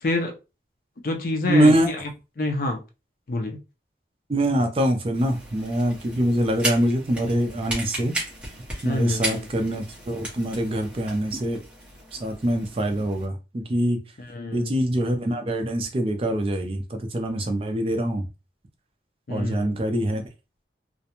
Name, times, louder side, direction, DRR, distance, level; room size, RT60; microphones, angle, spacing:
voice 1, 0.0-0.3 1.0-2.1 2.4-2.8 3.3-3.6 8.8-9.5 14.2-14.8 19.3-19.8, left 2 dB, 50° left, 0.5 m, -27 dB
voice 2, 1.4-1.9 4.3-8.1 8.8-11.6 12.1-14.0 14.5-18.3 19.3-20.2, right 1 dB, 30° right, 0.4 m, -24 dB
sound 1, 5.1-13.2, right 1 dB, 5° right, 0.8 m, -35 dB
2.4 x 2.1 x 2.8 m
head